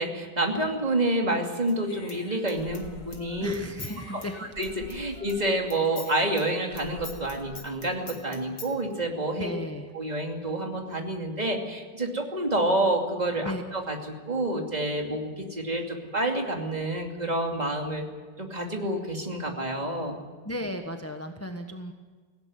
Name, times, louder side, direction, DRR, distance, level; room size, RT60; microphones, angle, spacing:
voice 1, 0.0-3.5 4.1-4.2 4.6-9.5 9.9-18.0 18.4-20.2, right 1 dB, 20° right, 2 dB, 2.7 m, -28 dB
Human voice / Scissors, 1.7-5.4 5.7-8.7, left 3 dB, 45° left, 2.8 m, -44 dB
voice 2, 3.4-4.5 5.1-5.2 9.3-9.9 13.4-13.6 20.4-21.9, equal, 10° left, 5 dB, 1.0 m, -35 dB
18.5 x 17.0 x 9.4 m, 1.5 s
omnidirectional pair, 1.9 m